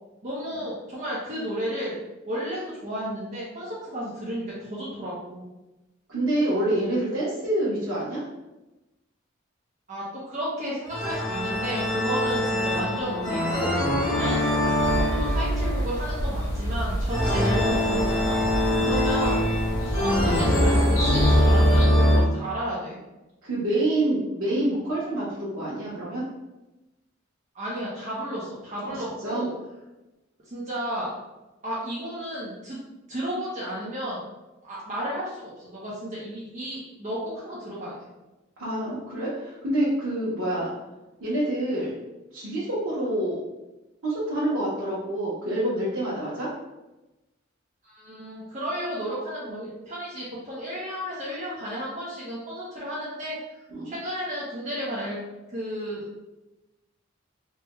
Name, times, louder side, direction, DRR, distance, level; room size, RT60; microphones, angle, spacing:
voice 1, 0.2-2.0 2.2-5.4 9.9-13.8 14.2-18.4 18.8-19.4 19.8-23.0 27.5-29.5 30.5-31.1 31.6-32.8 33.1-34.2 34.6-37.9 47.8-55.2 55.5-56.3, equal, 35° right, -7 dB, 0.7 m, -33 dB
voice 2, 6.1-8.2 18.7-18.9 23.4-26.2 29.2-29.4 38.6-40.7 41.2-41.9 42.3-43.4 44.0-46.5 53.7-53.9, right 1 dB, 90° right, -9 dB, 0.9 m, -27 dB
sound 1, 10.9-22.2, left 1 dB, 20° left, 1.0 m, -23 dB
sound 2, 14.8-21.8, right 1 dB, 85° left, 1.4 m, -28 dB
3.4 x 2.2 x 3.0 m, 1.0 s
head